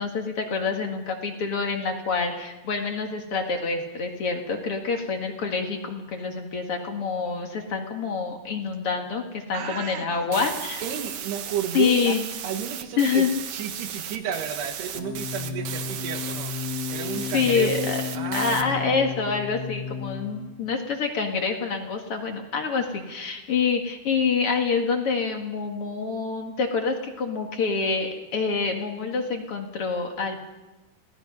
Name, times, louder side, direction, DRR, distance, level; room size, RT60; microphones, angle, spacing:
voice 1, 0.0-10.8 11.7-12.2 13.0-13.3 17.1-18.0 18.3-30.5, left 5 dB, 45° left, 3 dB, 2.0 m, -26 dB
voice 2, 9.5-10.3 10.8-12.2 12.4-13.3 13.5-16.6 16.9-19.0, right 8 dB, 80° right, 5 dB, 3.7 m, -32 dB
sound 1, 10.3-18.6, right 9 dB, 65° right, 1.9 m, -35 dB
sound 2, 14.9-20.6, left 7 dB, 75° left, 3.7 m, -33 dB
28.0 x 18.0 x 5.4 m, 1.1 s
omnidirectional pair, 4.7 m